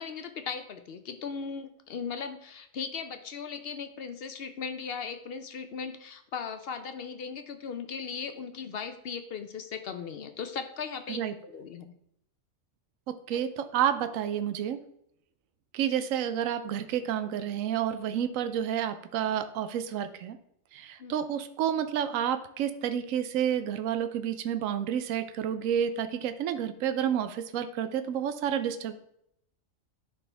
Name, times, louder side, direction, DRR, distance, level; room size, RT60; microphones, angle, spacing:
voice 1, 0.0-11.9 13.3-13.4 21.0-21.1, left 6 dB, 60° left, 8 dB, 0.7 m, -38 dB
voice 2, 13.1-14.8 15.7-20.4 20.7-28.9, right 9 dB, 80° right, 10 dB, 1.0 m, -30 dB
10.5 x 4.3 x 3.4 m, 0.74 s
omnidirectional pair, 1.4 m